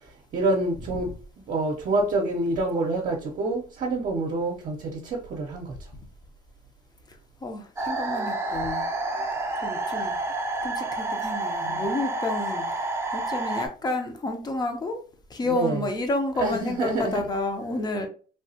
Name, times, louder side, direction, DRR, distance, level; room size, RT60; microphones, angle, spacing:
voice 1, 0.3-1.1 1.5-5.7 9.9-10.1 11.6-11.8 15.5-15.8 16.4-17.2, right 2 dB, 50° right, 0.7 m, -27 dB
voice 2, 7.1-8.8 9.6-10.1 10.6-15.0 15.3-18.1, left 2 dB, 25° left, 0.7 m, -30 dB
sound 1, 7.8-13.7, right 2 dB, 15° right, 0.6 m, -29 dB
3.3 x 2.3 x 2.7 m
cardioid pair, 110°, 17 cm